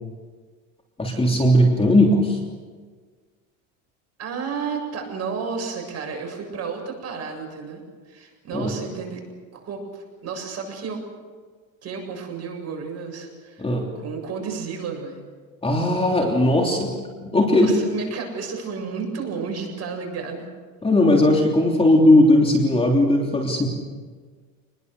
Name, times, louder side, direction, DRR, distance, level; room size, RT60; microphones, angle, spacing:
voice 1, 1.0-2.4 8.5-8.7 13.6-13.9 15.6-16.9 17.2-17.7 20.8-23.7, left 1 dB, 15° left, 1 dB, 3.2 m, -18 dB
voice 2, 4.2-9.2 9.5-11.0 11.8-15.2 17.5-20.5, right 5 dB, 40° right, 3 dB, 7.6 m, -32 dB
27.0 x 21.0 x 6.8 m, 1.5 s
supercardioid pair, 110°, 40 cm